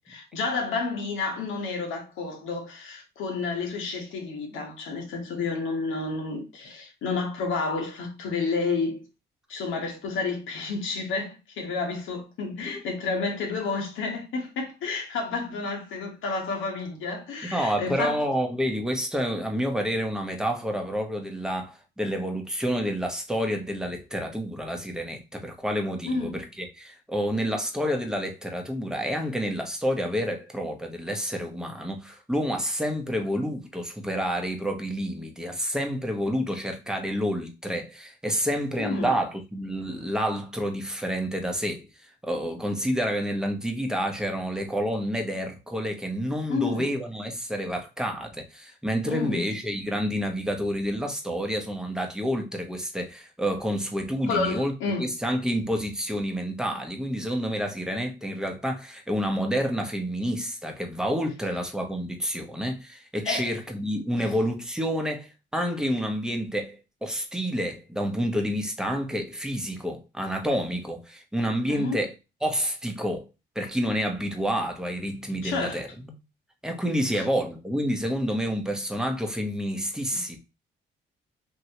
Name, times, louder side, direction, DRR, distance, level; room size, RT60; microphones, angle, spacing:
voice 1, 0.1-9.1 9.5-18.2 26.0-26.4 38.8-39.2 46.5-46.9 49.1-49.5 54.3-55.1 63.2-63.5 64.2-64.3 71.7-72.0 75.4-75.8 77.1-77.2 80.1-80.2, left 4 dB, 85° left, 1.1 m, -30 dB
voice 2, 17.5-54.7 55.0-72.1 72.4-73.3 73.5-76.1 76.6-80.4, equal, 5° right, 0.8 m, -29 dB
3.1 x 2.8 x 2.8 m
cardioid pair, 90°, 20 cm